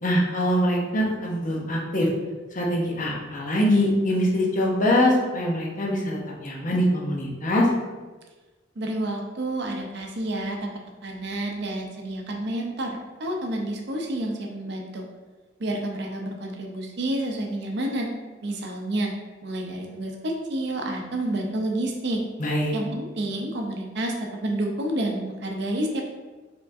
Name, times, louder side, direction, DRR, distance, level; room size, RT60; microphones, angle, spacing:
voice 1, 0.0-2.1 2.5-7.7 22.4-22.7, left 1 dB, 45° left, -2 dB, 0.8 m, -23 dB
voice 2, 8.8-10.7 11.0-15.0 15.6-18.1 18.4-19.1 19.4-22.2 22.7-26.0, right 1 dB, 60° right, 1 dB, 0.7 m, -29 dB
4.7 x 3.6 x 2.6 m, 1.3 s
head